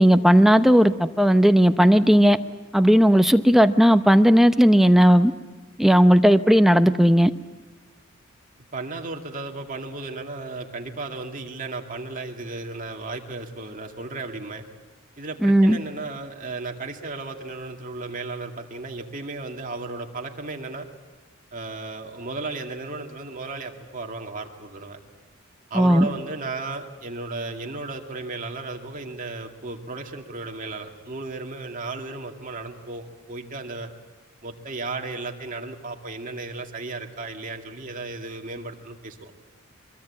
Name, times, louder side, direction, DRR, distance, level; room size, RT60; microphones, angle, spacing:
voice 1, 0.0-2.4 2.7-5.3 5.8-7.3 15.4-15.8 25.8-26.1, equal, ahead, 9 dB, 0.7 m, -16 dB
voice 2, 8.7-14.6 15.2-20.9 21.5-25.0 25.7-33.9 34.4-39.3, right 3 dB, 40° right, 3 dB, 2.3 m, -34 dB
23.5 x 23.0 x 8.7 m, 1.2 s
head